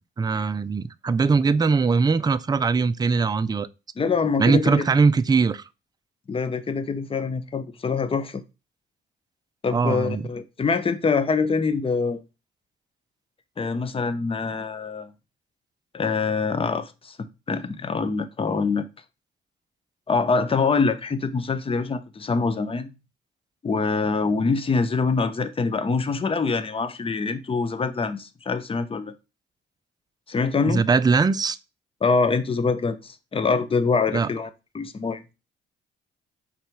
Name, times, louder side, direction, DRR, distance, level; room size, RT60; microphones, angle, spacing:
voice 1, 0.2-3.7 4.4-5.6 9.7-10.2 30.7-31.6 34.1-34.3, right 4 dB, 20° right, 0.5 m, -21 dB
voice 2, 4.0-4.9 6.3-8.4 9.6-12.2 13.6-15.1 15.9-18.9 20.1-22.9 23.6-29.1 30.3-30.8 32.0-34.5 34.7-35.2, left 4 dB, 30° left, 0.8 m, -24 dB
5.8 x 4.1 x 4.6 m
cardioid pair, 90°, 20 cm